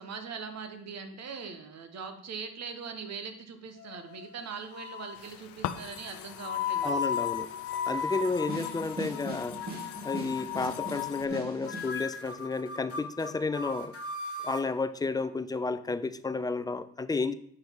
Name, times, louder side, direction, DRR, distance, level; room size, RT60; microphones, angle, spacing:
voice 1, 0.0-7.0, right 5 dB, 60° right, 7 dB, 1.1 m, -41 dB
sound 1, 3.8-4.4 4.7-5.2 6.0-9.3 9.6-10.0 10.4-10.7 10.9-11.4 11.7-14.7, left 6 dB, 50° left, 1.2 m, -35 dB
sound 2, 5.1-11.3, left 14 dB, 90° left, 0.5 m, -40 dB
voice 2, 6.8-7.5 7.9-9.6 10.0-13.9 14.4-17.3, left 3 dB, 15° left, 13 dB, 0.4 m, -32 dB
sound 3, 8.5-11.9, right 1 dB, 30° right, 2.1 m, -40 dB
7.9 x 5.9 x 3.6 m, 0.68 s
cardioid pair, 90°, 30 cm